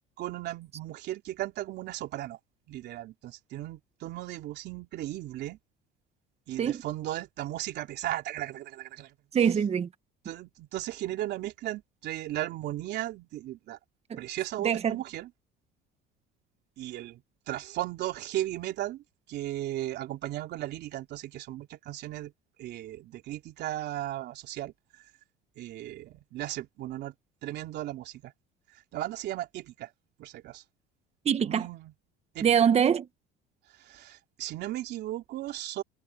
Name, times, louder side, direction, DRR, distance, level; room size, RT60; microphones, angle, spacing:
voice 1, 0.0-2.4 2.7-5.6 6.5-9.1 10.3-13.8 14.2-15.3 16.8-17.2 17.5-19.0 19.3-22.3 22.6-24.7 25.6-27.1 27.4-28.3 28.9-29.9 30.2-30.6 31.4-31.9 32.4-32.5 33.8-35.8, right 14 dB, 60° right, 3.4 m, -36 dB
voice 2, 9.3-9.9 14.1-14.2 14.6-15.0 31.2-31.7 32.4-33.1, right 8 dB, 35° right, 1.5 m, -24 dB
supercardioid pair, 110°, 20 cm